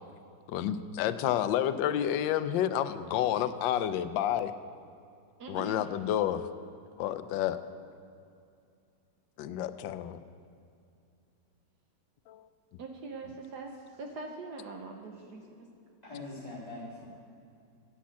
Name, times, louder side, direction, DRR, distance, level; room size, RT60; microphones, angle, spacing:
voice 1, 0.5-4.5 5.5-6.5 7.0-7.6 9.4-10.2 12.3-12.5, left 11 dB, 80° left, 11 dB, 1.3 m, -30 dB
voice 2, 5.4-5.8 12.8-13.7 14.0-15.7, right 3 dB, 65° right, 3 dB, 1.4 m, -42 dB
voice 3, 16.0-17.1, left 2 dB, 20° left, -10 dB, 2.2 m, -43 dB
10.0 x 7.5 x 8.5 m, 2.5 s
omnidirectional pair, 2.0 m